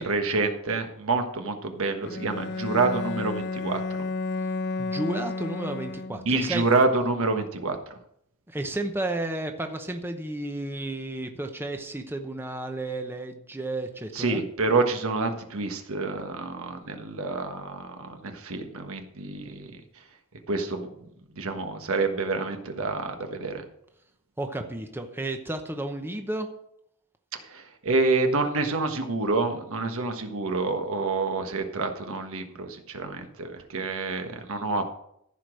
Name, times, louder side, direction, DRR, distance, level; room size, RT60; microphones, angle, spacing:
voice 1, 0.0-3.8 6.2-7.9 14.1-19.8 20.5-20.9 21.3-23.6 27.3-34.9, right 3 dB, 65° right, 6 dB, 1.3 m, -27 dB
Bowed string instrument, 2.0-6.5, left 3 dB, 50° left, 0.5 m, -32 dB
voice 2, 4.8-6.7 8.5-14.4 24.4-26.5, right 2 dB, 10° right, 5 dB, 0.8 m, -32 dB
14.5 x 5.1 x 6.3 m, 0.74 s
head